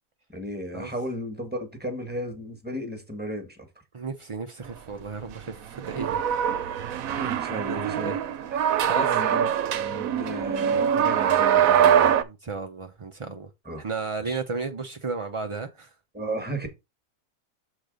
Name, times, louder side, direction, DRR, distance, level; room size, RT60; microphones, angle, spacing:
voice 1, 0.3-3.6 7.0-8.1 8.9-9.5 9.7-12.2 13.6-13.8 14.2-14.4 16.1-16.7, equal, 5° right, 1.2 m, -34 dB
voice 2, 3.9-6.4 7.5-8.2 8.9-9.1 12.2-13.5 13.8-15.9, right 4 dB, 55° right, 0.3 m, -34 dB
sound 1, 5.7-12.2, right 9 dB, 70° right, 1.1 m, -23 dB
6.5 x 3.9 x 5.1 m
omnidirectional pair, 1.6 m